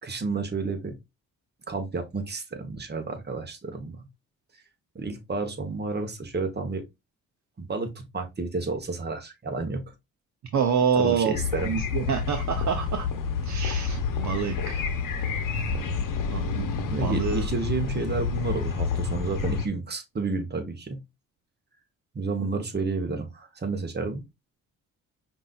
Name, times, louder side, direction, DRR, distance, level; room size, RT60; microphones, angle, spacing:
voice 1, 0.0-1.0 1.7-4.0 4.9-6.8 7.6-9.9 10.9-11.7 16.8-21.0 22.1-24.2, right 3 dB, 30° right, 1.2 m, -31 dB
voice 2, 10.5-11.4 11.6-13.1 13.4-14.8 16.3-17.5, right 7 dB, 55° right, 0.8 m, -27 dB
sound 1, 11.3-19.7, left 5 dB, 70° left, 0.9 m, -29 dB
5.3 x 2.7 x 2.4 m
cardioid pair, 65°, 33 cm